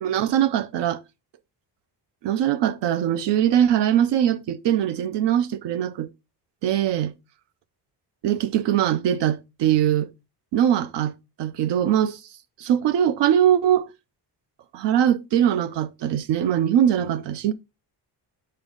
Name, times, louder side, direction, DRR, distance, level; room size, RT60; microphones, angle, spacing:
voice 1, 0.0-1.0 2.2-6.1 6.6-7.1 8.2-10.1 10.5-12.2 12.6-13.9 14.7-17.5, right 10 dB, 80° right, 0.7 m, -21 dB
5.4 x 4.5 x 3.8 m
cardioid pair, 180°, 41 cm